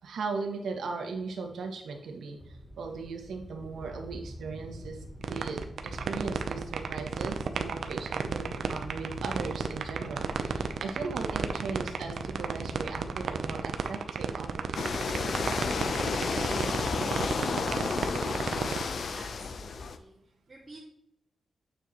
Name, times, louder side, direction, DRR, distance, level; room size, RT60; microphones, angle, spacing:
voice 1, 0.0-14.9, right 4 dB, 90° right, 2 dB, 1.7 m, -38 dB
sound 1, 2.4-13.6, equal, 10° left, 1.2 m, -45 dB
sound 2, 5.2-18.9, right 6 dB, 70° right, 0.8 m, -32 dB
sound 3, 14.7-20.0, left 4 dB, 55° left, 0.7 m, -31 dB
voice 2, 19.1-20.8, right 2 dB, 25° right, -7 dB, 2.4 m, -51 dB
9.0 x 7.0 x 3.1 m, 0.80 s
wide cardioid pair, 145°, 0 cm